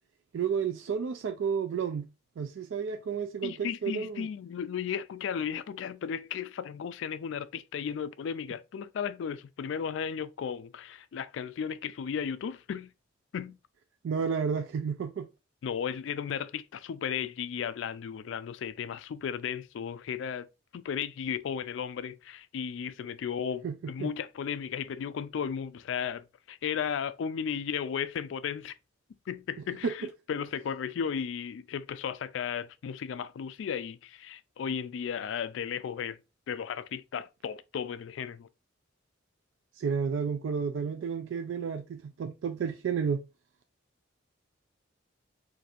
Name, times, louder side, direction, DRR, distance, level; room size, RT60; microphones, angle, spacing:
voice 1, 0.3-2.1 2.4-4.3 14.0-15.3 23.6-24.1 29.8-29.9 39.8-43.2, right 6 dB, 70° right, 0.3 m, -31 dB
voice 2, 3.4-12.9 13.3-13.6 15.6-20.5 20.7-28.7 29.3-36.2 36.5-38.5, left 7 dB, 70° left, 0.3 m, -35 dB
4.1 x 2.6 x 2.4 m
head